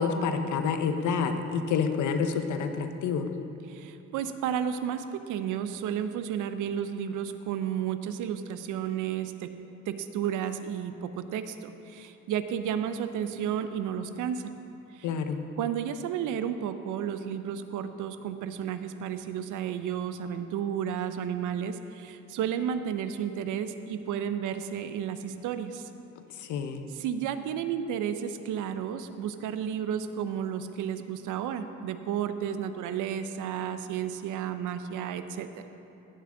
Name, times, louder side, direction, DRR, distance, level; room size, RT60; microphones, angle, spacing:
voice 1, 0.0-3.3 15.0-15.4 26.4-26.9, left 5 dB, 75° left, 7 dB, 0.8 m, -28 dB
voice 2, 3.7-9.5 9.9-14.5 14.9-15.1 15.6-25.9 26.9-35.7, right 8 dB, 85° right, 10 dB, 0.6 m, -32 dB
15.0 x 7.1 x 3.8 m, 2.9 s
cardioid pair, 90°, 30 cm